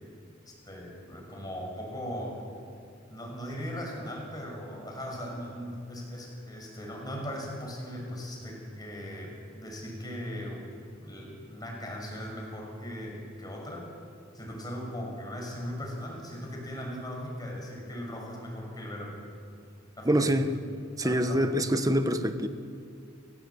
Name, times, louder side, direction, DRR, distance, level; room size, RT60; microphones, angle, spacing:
voice 1, 0.5-2.4 3.1-10.6 11.0-13.9 14.3-19.2 20.0-20.2 21.0-21.4, equal, 20° left, -1 dB, 6.4 m, -38 dB
voice 2, 20.0-20.5 21.0-22.5, equal, 20° right, 8 dB, 1.3 m, -25 dB
29.5 x 17.0 x 8.5 m, 2.3 s
head